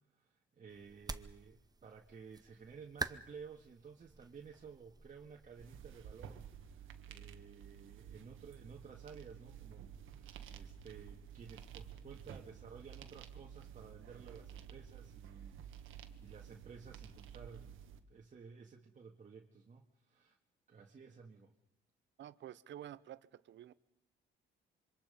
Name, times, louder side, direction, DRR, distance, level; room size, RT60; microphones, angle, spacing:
voice 1, 0.2-17.7 18.1-20.4 20.7-21.5, right 5 dB, 40° right, 1.9 m, -55 dB
sound 1, 0.7-6.3, right 3 dB, 20° right, 1.0 m, -48 dB
sound 2, 5.5-18.0, right 9 dB, 80° right, 1.6 m, -52 dB
voice 2, 22.2-23.7, right 11 dB, 65° right, 0.9 m, -50 dB
26.5 x 24.5 x 5.3 m
cardioid pair, 90°, 20 cm